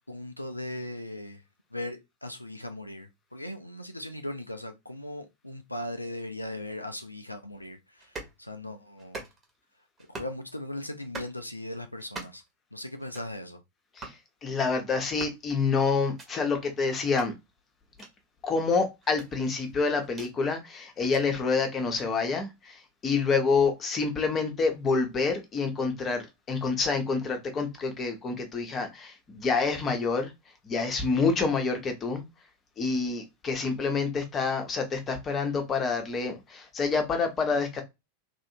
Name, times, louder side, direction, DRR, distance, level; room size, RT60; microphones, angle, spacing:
voice 1, 0.1-1.4 1.7-9.3 10.1-12.4 12.7-13.6, left 1 dB, 85° left, 0.4 m, -38 dB
sound 1, 8.0-8.4 9.0-9.6 10.0-10.4 11.0-11.4 12.0-12.5 13.0-13.3 14.0-14.2 15.0-15.4 16.0-16.3 17.0-17.3 18.0-18.1 19.0-20.3 20.9-21.2 22.0-22.1, right 3 dB, 25° right, 1.2 m, -43 dB
voice 2, 14.4-17.3 18.4-30.3 30.6-32.2 32.8-37.8, left 4 dB, 25° left, 0.9 m, -27 dB
3.1 x 2.6 x 2.7 m
figure-of-eight pair, 90°, 0 cm